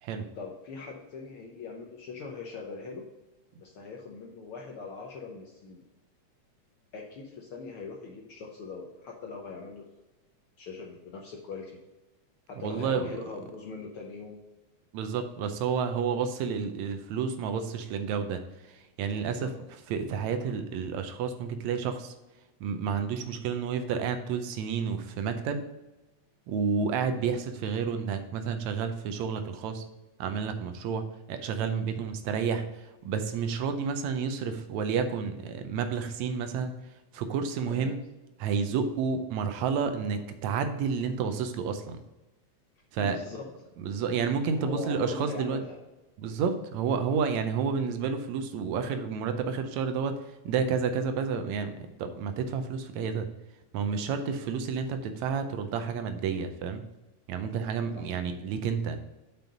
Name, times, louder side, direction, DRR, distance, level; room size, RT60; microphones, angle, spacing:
voice 1, 0.4-3.0 3.6-5.8 6.9-9.8 10.6-11.8 12.5-14.4 19.2-19.5 37.7-37.9 43.0-43.4 44.5-45.8 57.9-58.1, left 4 dB, 70° left, 0 dB, 1.3 m, -41 dB
voice 2, 12.6-13.1 14.9-19.5 19.9-22.1 22.6-25.6 26.5-29.8 30.2-38.0 38.4-42.0 42.9-43.2 43.8-45.6 46.2-53.3 53.7-56.8 57.3-59.0, right 6 dB, 80° right, 8 dB, 1.9 m, -30 dB
5.9 x 5.3 x 5.2 m, 1.1 s
omnidirectional pair, 3.3 m